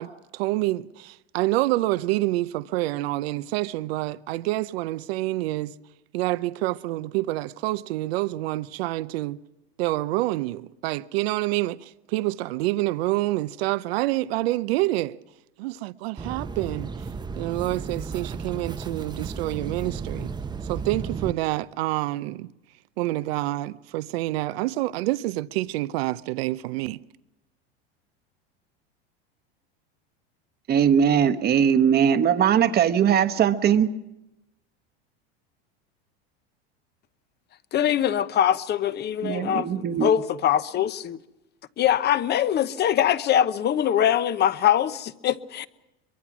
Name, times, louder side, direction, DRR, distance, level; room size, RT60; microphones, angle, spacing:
voice 1, 0.0-5.7 6.1-9.4 9.8-15.2 15.6-16.9 17.4-20.3 20.7-22.5 23.0-27.0, right 18 dB, 75° right, 0.7 m, -27 dB
sound 1, 16.2-21.3, right 5 dB, 15° right, 0.8 m, -34 dB
voice 2, 30.7-33.9 39.2-40.1, right 8 dB, 30° right, 1.1 m, -20 dB
voice 3, 37.7-41.2 41.8-45.7, left 10 dB, 35° left, 0.9 m, -23 dB
23.5 x 23.0 x 6.1 m
supercardioid pair, 115°, 31 cm